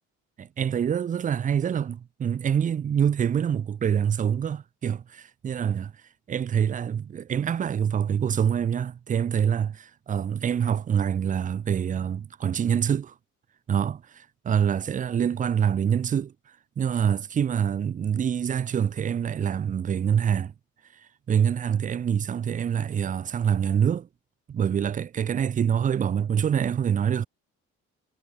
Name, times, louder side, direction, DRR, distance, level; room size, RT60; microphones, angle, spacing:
voice 1, 0.4-5.9 6.3-13.1 13.7-16.3 16.8-20.5 21.3-24.1 24.5-27.3, right 8 dB, 25° right, 0.3 m, -25 dB
cardioid pair, 90°, 30 cm